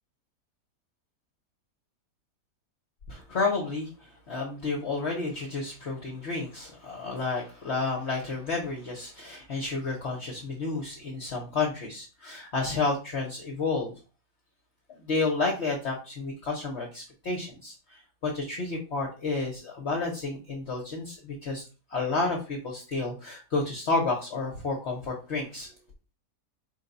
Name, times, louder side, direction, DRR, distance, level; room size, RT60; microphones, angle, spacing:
voice 1, 3.1-13.9 15.0-21.6 21.9-25.7, left 3 dB, 50° left, -1 dB, 0.9 m, -31 dB
4.6 x 2.2 x 3.9 m, 0.33 s
omnidirectional pair, 1.8 m